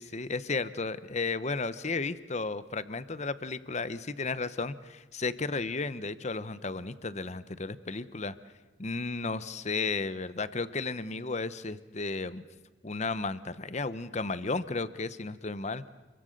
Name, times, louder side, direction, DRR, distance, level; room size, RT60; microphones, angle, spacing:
voice 1, 0.0-8.3 8.8-12.4 12.8-15.9, left 3 dB, 35° left, 14 dB, 0.9 m, -33 dB
29.5 x 23.0 x 6.6 m, 1.3 s
head